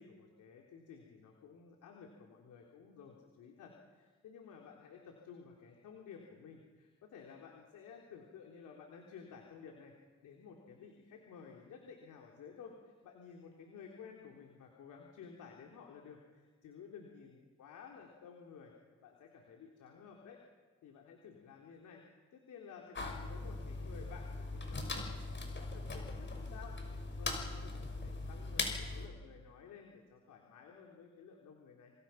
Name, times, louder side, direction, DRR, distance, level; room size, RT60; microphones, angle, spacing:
voice 1, 0.0-9.9 10.2-18.7 19.0-20.4 20.8-22.0 22.3-31.9, left 6 dB, 80° left, 0 dB, 3.7 m, -54 dB
sound 1, 22.9-29.1, left 3 dB, 40° left, 5.8 m, -40 dB
27.5 x 26.5 x 5.9 m, 1.4 s
cardioid pair, 90°, 30 cm